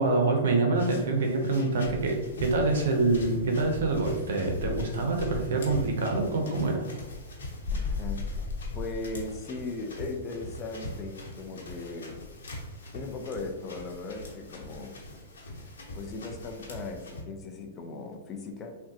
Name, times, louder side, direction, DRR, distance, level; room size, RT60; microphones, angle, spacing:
voice 1, 0.0-6.9, right 3 dB, 75° right, 2 dB, 0.6 m, -26 dB
sound 1, 0.7-17.2, left 1 dB, 85° left, 0.9 m, -42 dB
Insect, 1.8-4.1 4.6-6.0 7.6-9.3, left 4 dB, 70° left, 0.6 m, -36 dB
voice 2, 7.7-8.3 8.7-12.2 12.9-15.0 15.9-18.7, left 3 dB, 25° left, 4 dB, 0.5 m, -38 dB
3.6 x 2.2 x 2.7 m, 1.3 s
hypercardioid pair, 135°, 0 cm